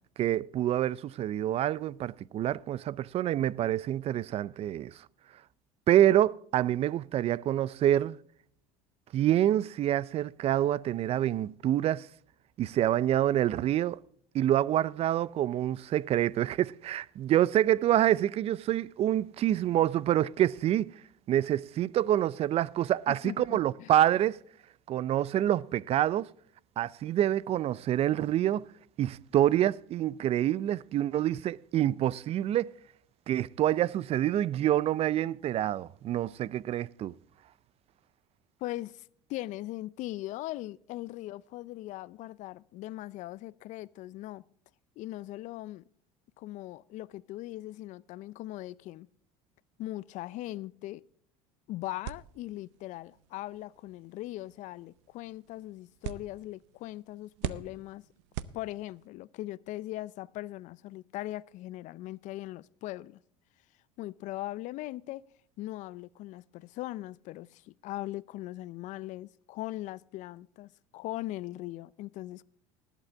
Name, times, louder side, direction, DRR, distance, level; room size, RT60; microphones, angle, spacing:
voice 1, 0.2-5.0 5.9-8.2 9.1-12.1 12.6-14.0 14.3-20.9 21.3-24.4 24.9-26.3 26.8-28.7 29.0-32.7 33.3-37.1, right 12 dB, 45° right, 0.4 m, -27 dB
voice 2, 23.1-23.9 38.6-44.4 45.0-45.8 46.4-49.1 49.8-51.0 51.7-58.0 58.5-63.2 64.0-65.2 65.6-72.4, left 16 dB, 60° left, 0.5 m, -40 dB
sound 1, 52.0-59.2, right 12 dB, 80° right, 0.7 m, -44 dB
19.5 x 8.2 x 3.4 m
supercardioid pair, 90°, 14 cm